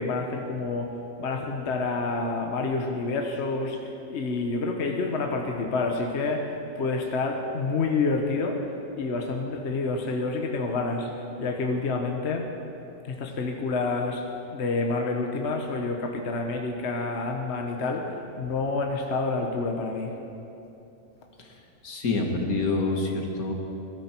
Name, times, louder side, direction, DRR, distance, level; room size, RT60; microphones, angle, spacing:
voice 1, 0.0-8.6 9.0-12.5 13.0-14.2 14.5-20.1, left 3 dB, 50° left, 2 dB, 1.3 m, -28 dB
voice 2, 21.8-23.5, left 3 dB, 70° left, 1 dB, 2.1 m, -27 dB
21.5 x 13.5 x 4.5 m, 2.9 s
omnidirectional pair, 1.6 m